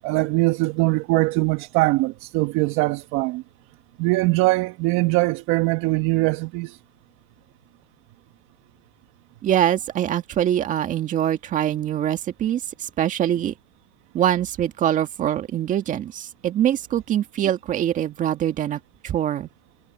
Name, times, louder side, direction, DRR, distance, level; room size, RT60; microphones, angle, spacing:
voice 1, 0.0-3.4 4.0-6.8, right 21 dB, 40° right, 1.4 m, -22 dB
voice 2, 9.4-13.5 14.1-19.5, right 11 dB, 25° right, 1.9 m, -24 dB
hypercardioid pair, 140°, 33 cm